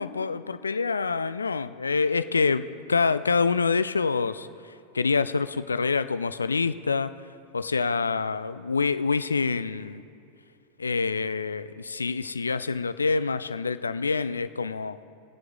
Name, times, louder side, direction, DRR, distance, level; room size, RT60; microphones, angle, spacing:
voice 1, 0.0-7.1 7.5-10.0 10.8-15.0, left 4 dB, 75° left, 13 dB, 0.3 m, -26 dB
20.5 x 7.7 x 3.5 m, 2.7 s
figure-of-eight pair, 90°, 0 cm